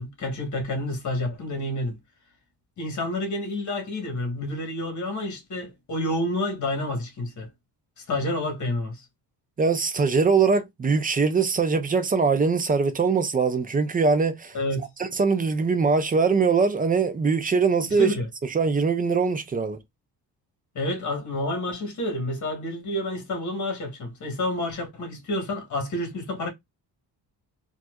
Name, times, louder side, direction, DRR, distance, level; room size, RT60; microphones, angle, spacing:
voice 1, 0.0-2.0 2.8-7.5 8.0-9.0 14.5-14.9 17.9-18.3 20.7-26.5, left 1 dB, 45° left, 1.4 m, -29 dB
voice 2, 9.6-14.6 15.0-18.1 18.4-19.8, right 5 dB, 20° right, 0.4 m, -22 dB
4.2 x 2.4 x 2.3 m
cardioid pair, 145°, 41 cm